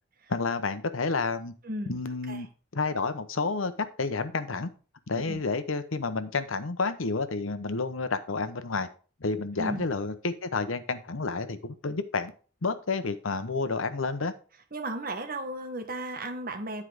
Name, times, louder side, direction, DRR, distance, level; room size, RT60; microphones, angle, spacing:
voice 1, 0.3-1.5 1.9-2.5 2.7-3.7 4.0-4.7 5.1-8.9 9.2-12.3 12.6-14.3, left 4 dB, 85° left, 11 dB, 0.9 m, -30 dB
voice 2, 1.6-2.0 2.3-2.5 5.3-5.4 9.6-9.9 14.7-16.8, right 1 dB, 45° right, 6 dB, 1.3 m, -35 dB
10.0 x 4.8 x 5.0 m, 0.37 s
head